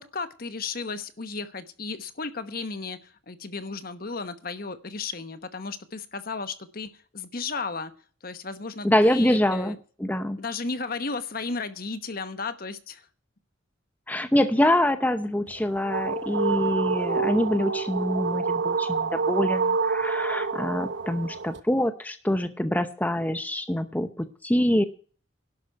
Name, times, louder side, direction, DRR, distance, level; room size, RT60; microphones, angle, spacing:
voice 1, 0.0-7.9 8.2-9.8 10.4-13.1, left 4 dB, 50° left, 11 dB, 1.1 m, -34 dB
voice 2, 8.8-10.4 14.1-24.8, left 1 dB, 10° left, 9 dB, 0.8 m, -25 dB
sound 1, 15.5-21.6, right 4 dB, 65° right, 1.1 m, -27 dB
11.5 x 6.2 x 9.3 m, 0.41 s
head